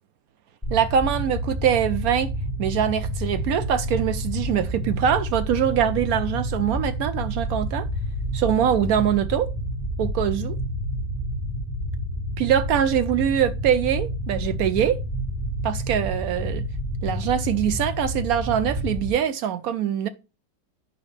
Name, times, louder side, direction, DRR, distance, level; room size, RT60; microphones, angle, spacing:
sound 1, 0.6-19.1, equal, ahead, 3.0 m, -29 dB
voice 1, 0.7-2.3 2.6-7.9 8.3-9.5 10.0-10.5 12.4-15.0 15.6-16.6 17.0-20.1, right 9 dB, 70° right, 0.9 m, -23 dB
9.5 x 5.3 x 3.2 m
omnidirectional pair, 1.9 m